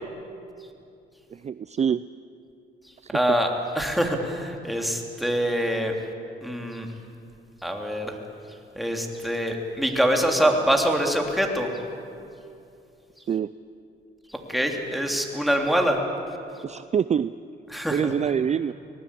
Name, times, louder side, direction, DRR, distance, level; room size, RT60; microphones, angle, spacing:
voice 1, 1.3-2.0 3.0-3.1 13.3-13.5 16.6-17.3 17.9-18.7, right 7 dB, 35° right, 15 dB, 0.5 m, -25 dB
voice 2, 3.1-5.9 6.4-6.9 7.6-8.1 8.7-11.7 14.5-16.0 17.7-18.1, equal, ahead, 2 dB, 3.3 m, -24 dB
25.0 x 18.5 x 8.4 m, 2.6 s
cardioid pair, 90°, 20 cm